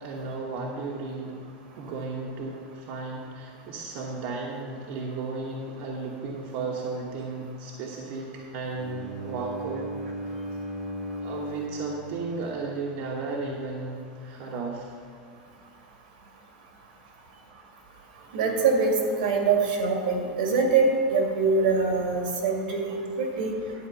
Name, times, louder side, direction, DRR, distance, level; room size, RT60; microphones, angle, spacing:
voice 1, 0.0-1.4 1.8-9.9 11.2-14.9, right 3 dB, 55° right, -2 dB, 1.2 m, -34 dB
Bowed string instrument, 8.8-12.9, equal, ahead, 1.0 m, -36 dB
voice 2, 18.3-18.9 19.2-23.5, right 4 dB, 85° right, 1 dB, 2.2 m, -24 dB
11.0 x 4.5 x 7.8 m, 2.4 s
supercardioid pair, 145°, 5 cm